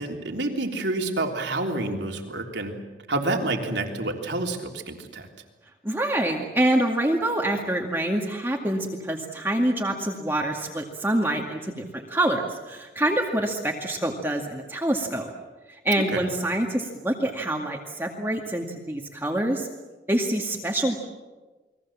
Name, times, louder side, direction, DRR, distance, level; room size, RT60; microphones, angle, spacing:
voice 1, 0.0-2.8 3.1-5.3 16.1-16.3, right 2 dB, 85° right, 2 dB, 3.5 m, -28 dB
voice 2, 5.8-15.3 15.8-19.7 20.1-21.0, right 1 dB, 10° right, 0 dB, 2.1 m, -26 dB
29.5 x 22.0 x 7.4 m, 1.2 s
head